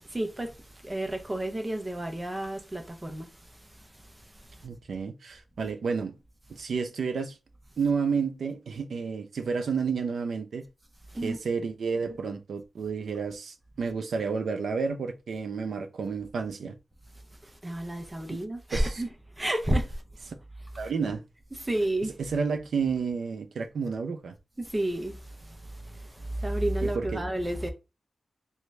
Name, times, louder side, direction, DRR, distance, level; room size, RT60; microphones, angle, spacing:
voice 1, 0.1-0.6 0.8-3.3 5.6-5.7 11.1-11.4 17.6-19.1 19.4-19.9 21.6-22.1 24.6-25.2 25.4-25.6 25.9-27.7, right 1 dB, 15° right, 0.6 m, -30 dB
voice 2, 4.6-6.2 6.5-7.4 7.8-10.6 11.2-16.8 18.3-18.4 18.7-19.0 20.8-21.2 22.2-24.3 26.8-27.3, right 5 dB, 80° right, 0.5 m, -31 dB
3.5 x 2.5 x 3.2 m
wide cardioid pair, 180°, 0 cm